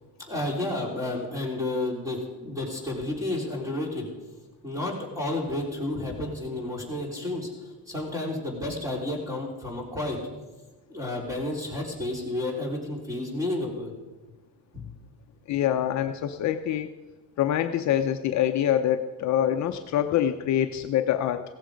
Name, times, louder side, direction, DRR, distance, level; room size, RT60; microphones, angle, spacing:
voice 1, 0.2-4.1 4.6-10.2 10.9-13.9 14.7-14.9, left 2 dB, 10° right, 0 dB, 3.8 m, -31 dB
voice 2, 15.5-16.9 17.4-21.4, left 10 dB, 50° left, 7 dB, 0.7 m, -25 dB
16.5 x 14.0 x 5.2 m, 1.2 s
cardioid pair, 155°, 36 cm